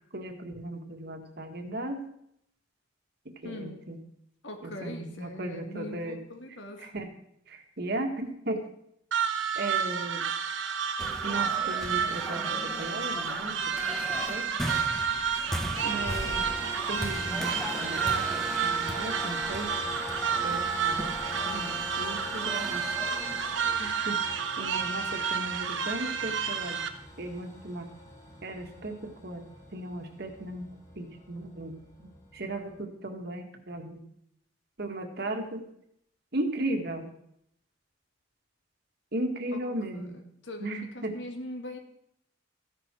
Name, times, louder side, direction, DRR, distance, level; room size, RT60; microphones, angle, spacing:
voice 1, 0.1-2.0 3.2-4.0 4.6-6.2 6.8-7.1 7.5-8.6 9.5-10.3 11.2-13.8 14.1-14.5 15.8-16.5 16.9-19.7 20.4-21.2 21.4-22.9 23.8-24.2 24.6-26.8 27.2-27.9 28.4-30.7 30.9-34.0 34.8-35.6 36.3-37.1 39.1-40.2 40.6-41.1, right 1 dB, 60° right, 5 dB, 1.7 m, -36 dB
voice 2, 3.4-3.8 4.4-6.9 39.5-39.6 39.9-40.1 40.4-41.8, left 1 dB, 80° left, 3 dB, 2.3 m, -41 dB
sound 1, 9.1-26.9, right 7 dB, 85° right, 1.1 m, -30 dB
sound 2, 11.0-23.9, equal, ahead, 0.9 m, -39 dB
sound 3, 15.7-32.8, left 2 dB, 15° left, 2.4 m, -42 dB
14.5 x 10.5 x 4.5 m, 0.74 s
head